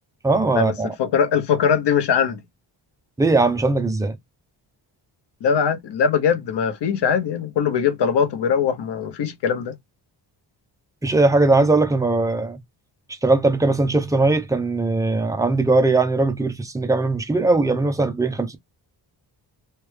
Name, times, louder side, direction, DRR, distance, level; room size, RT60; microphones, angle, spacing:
voice 1, 0.2-0.9 3.2-4.2 11.0-12.6 13.2-18.6, right 2 dB, 10° right, 0.5 m, -19 dB
voice 2, 1.0-2.4 5.4-9.7, left 7 dB, 65° left, 0.9 m, -21 dB
3.3 x 2.2 x 3.2 m
wide cardioid pair, 140°, 44 cm